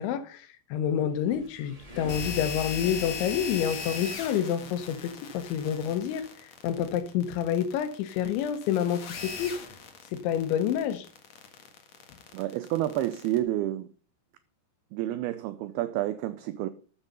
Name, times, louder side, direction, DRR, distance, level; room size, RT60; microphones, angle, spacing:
voice 1, 0.0-6.3 6.6-9.6 10.1-11.1, left 9 dB, 85° left, 3.5 m, -28 dB
sound 1, 1.0-4.6, left 3 dB, 15° right, 1.2 m, -43 dB
sound 2, 2.1-13.4, left 5 dB, 55° left, 2.0 m, -39 dB
voice 2, 12.3-13.9 14.9-16.7, right 14 dB, 90° right, 2.2 m, -29 dB
13.5 x 7.1 x 5.4 m
omnidirectional pair, 5.2 m